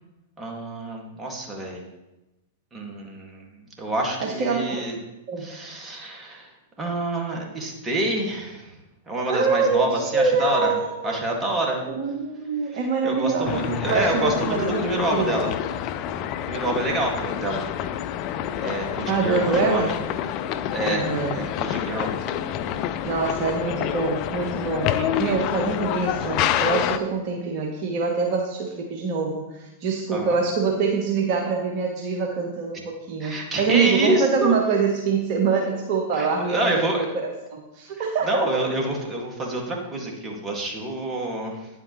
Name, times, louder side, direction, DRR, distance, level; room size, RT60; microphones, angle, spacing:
voice 1, 0.4-1.8 2.7-3.5 3.8-5.0 5.4-6.5 6.8-8.8 9.1-10.7 11.0-11.8 12.7-15.5 16.5-17.7 18.6-19.9 20.7-22.1 24.9-25.4 30.1-30.4 33.2-34.5 36.1-37.1 38.2-41.7, right 1 dB, 20° right, 0 dB, 2.0 m, -27 dB
voice 2, 4.2-4.9 5.3-5.5 9.3-11.3 11.8-15.4 19.1-19.9 20.9-21.3 23.0-38.4, right 4 dB, 45° right, 1 dB, 1.2 m, -25 dB
sound 1, 13.4-27.0, left 10 dB, 40° left, 0.5 m, -28 dB
9.6 x 8.0 x 3.1 m, 0.99 s
figure-of-eight pair, 100°, 0 cm